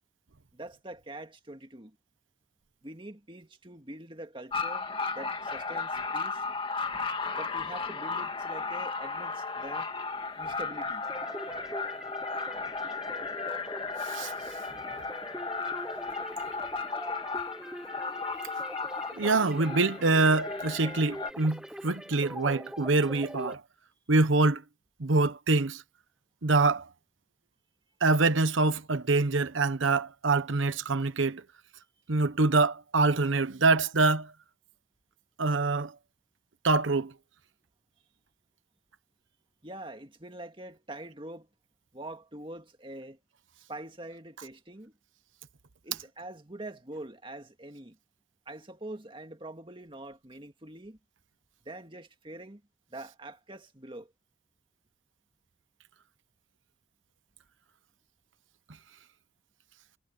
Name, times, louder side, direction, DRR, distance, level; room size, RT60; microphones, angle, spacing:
voice 1, 0.5-2.0 2.8-4.9 5.1-6.4 7.3-9.9 10.4-11.1 39.6-41.5 41.9-43.2 43.7-44.9 45.8-48.0 48.5-51.0 51.7-52.6 52.9-54.1, right 1 dB, 25° right, 2.1 m, -44 dB
sound 1, 4.5-21.3, left 4 dB, 25° left, 2.2 m, -35 dB
sound 2, 11.0-23.6, equal, 5° right, 0.7 m, -43 dB
voice 2, 19.2-23.6 24.1-24.6 25.0-25.8 26.4-26.9 28.0-31.4 32.1-34.3 35.4-35.9 36.6-37.1, right 3 dB, 90° right, 1.0 m, -25 dB
head